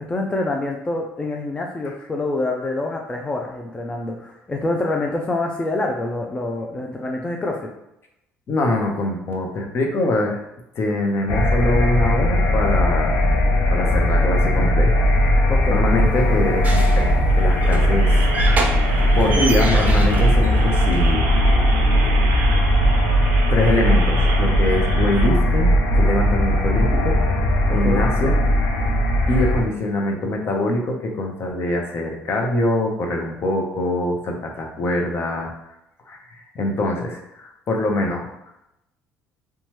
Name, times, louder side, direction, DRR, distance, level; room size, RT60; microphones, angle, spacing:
voice 1, 0.1-7.6 15.5-15.8 27.8-28.0, left 2 dB, 20° left, 1 dB, 0.4 m, -26 dB
voice 2, 8.5-10.4 10.8-13.2 13.7-18.8 19.2-21.3 22.1-22.2 23.5-27.2 27.7-28.4 29.3-35.5 36.1-36.2 36.5-38.3, left 2 dB, 50° left, 1 dB, 0.7 m, -24 dB
sound 1, 11.3-29.6, equal, 85° left, 0.5 m, -18 dB
sound 2, 16.0-21.1, right 2 dB, 30° right, 0.6 m, -29 dB
sound 3, 17.3-25.3, right 6 dB, 85° right, 0.3 m, -32 dB
2.9 x 2.3 x 2.9 m, 0.86 s
supercardioid pair, 85°, 5 cm